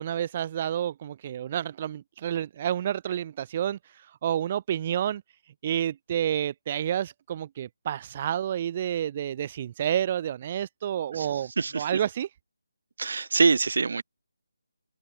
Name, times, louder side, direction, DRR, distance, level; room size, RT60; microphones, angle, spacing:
voice 1, 0.0-5.2 5.6-12.3, right 10 dB, 25° right, 2.8 m, -29 dB
voice 2, 11.6-11.9 13.0-14.0, right 4 dB, 50° right, 6.1 m, -24 dB
figure-of-eight pair, 150°, 0 cm